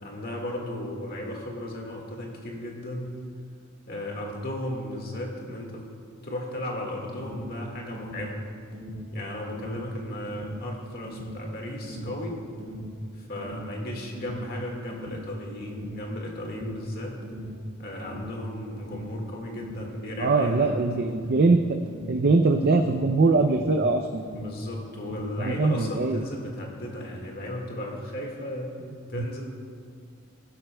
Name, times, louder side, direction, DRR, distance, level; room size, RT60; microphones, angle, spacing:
voice 1, 0.0-3.1 3.9-5.9 6.2-8.4 9.1-12.4 13.2-17.2 17.8-20.8 24.3-28.7 29.1-29.4, left 1 dB, 45° left, 0 dB, 1.7 m, -35 dB
Alarm, 7.2-24.6 24.9-26.2, equal, 25° right, 2.3 m, -39 dB
voice 2, 20.2-21.6 22.1-24.2 25.4-26.2 29.1-29.2, right 3 dB, 50° right, 5 dB, 0.4 m, -22 dB
16.0 x 12.0 x 2.2 m, 2.1 s
head